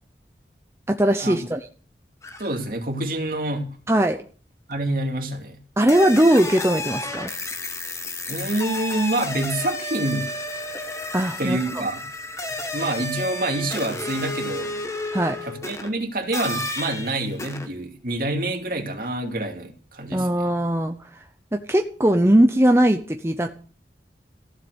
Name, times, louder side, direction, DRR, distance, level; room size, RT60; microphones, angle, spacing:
voice 1, 0.9-1.7 3.9-4.2 5.8-7.3 11.1-11.8 15.1-15.4 20.1-21.2 21.5-23.5, right 1 dB, 15° right, 0.8 m, -20 dB
sound 1, 2.2-2.7 4.7-4.8 5.9-15.9 16.3-17.7, left 2 dB, 15° left, 1.4 m, -32 dB
voice 2, 2.4-3.7 4.7-5.6 8.3-10.3 11.4-12.0 12.7-14.8 15.4-20.4, right 1 dB, 55° right, 2.5 m, -27 dB
15.0 x 7.6 x 8.0 m
head